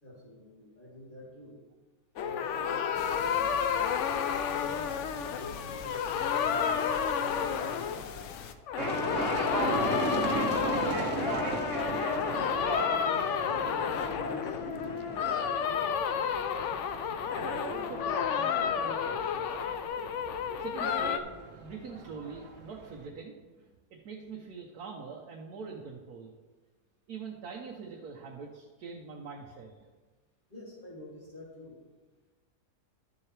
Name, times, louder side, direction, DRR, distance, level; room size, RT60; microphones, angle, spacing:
voice 1, 0.0-1.6 2.2-2.8 3.1-3.8 4.5-6.8 7.1-8.3 8.8-11.1 12.9-15.5 30.5-31.8, equal, 35° left, -7 dB, 3.4 m, -47 dB
sound 1, 2.2-8.4 8.7-21.2, left 7 dB, 65° left, 0.8 m, -31 dB
sound 2, 2.9-8.5, left 7 dB, 85° left, 1.2 m, -45 dB
sound 3, 8.8-23.1, right 2 dB, 50° right, 1.3 m, -36 dB
voice 2, 17.3-19.5 20.6-21.3 21.6-26.3 27.1-29.9, right 5 dB, 85° right, -1 dB, 1.4 m, -43 dB
12.5 x 7.3 x 3.3 m, 1.4 s
omnidirectional pair, 1.6 m